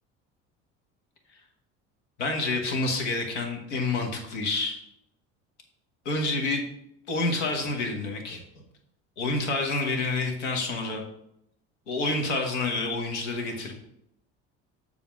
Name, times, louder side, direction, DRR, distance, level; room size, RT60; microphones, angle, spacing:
voice 1, 2.2-4.8 6.0-6.7 7.1-8.6 9.2-11.0 11.9-13.7, left 2 dB, 90° left, 2 dB, 1.5 m, -28 dB
7.0 x 4.0 x 6.1 m, 0.75 s
hypercardioid pair, 75°, 34 cm